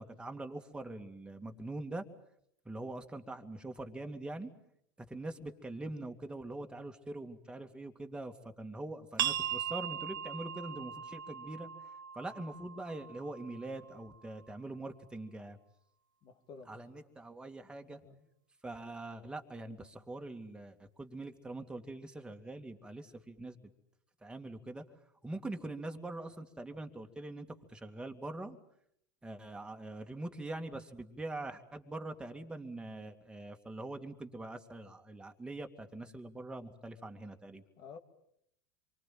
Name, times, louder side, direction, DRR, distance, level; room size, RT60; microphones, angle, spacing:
voice 1, 0.0-2.0 2.6-4.5 5.0-11.7 12.1-15.6 16.7-18.0 18.6-23.6 24.2-24.8 25.2-28.6 29.2-37.6, right 2 dB, 10° right, 5 dB, 2.5 m, -43 dB
sound 1, 9.2-14.6, right 10 dB, 80° right, 1.2 m, -39 dB
voice 2, 16.2-16.8 17.9-18.2 37.8-38.0, left 5 dB, 45° left, 6 dB, 3.0 m, -51 dB
27.5 x 24.5 x 7.8 m, 0.73 s
hypercardioid pair, 90°, 11 cm